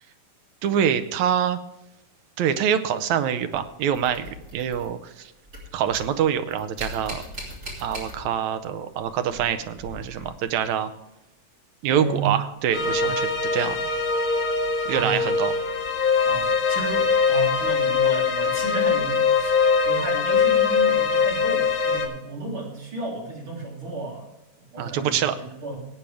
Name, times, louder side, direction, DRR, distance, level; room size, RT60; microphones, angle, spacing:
voice 1, 0.6-1.6 2.4-5.3 5.7-7.2 7.8-10.9 11.8-13.8 14.9-15.5 24.8-25.4, right 9 dB, 75° right, 10 dB, 2.1 m, -25 dB
sound 1, 3.5-5.2 5.4-8.6 8.9-10.7 12.6-12.7 13.5-13.6, equal, 25° right, 3.4 m, -40 dB
voice 2, 11.9-12.3 13.0-13.2 14.9-15.3 16.2-24.3 24.7-25.9, right 2 dB, 40° right, -3 dB, 4.1 m, -33 dB
sound 2, 12.7-22.1, left 5 dB, 45° left, 2.3 m, -22 dB
17.5 x 8.9 x 3.4 m, 0.90 s
omnidirectional pair, 3.4 m